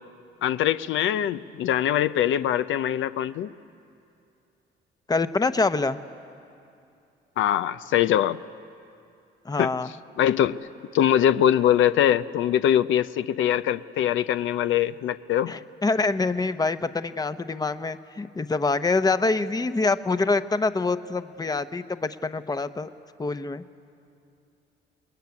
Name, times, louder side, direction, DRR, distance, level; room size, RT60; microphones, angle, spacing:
voice 1, 0.4-3.5 7.4-8.4 9.6-9.7 10.2-10.6 10.9-15.5, left 10 dB, 75° left, 13 dB, 0.6 m, -22 dB
voice 2, 5.1-6.0 9.4-9.9 15.5-22.9 23.2-23.6, left 3 dB, 20° left, 11 dB, 0.9 m, -25 dB
27.5 x 20.5 x 9.6 m, 2.6 s
cardioid pair, 90°, 20 cm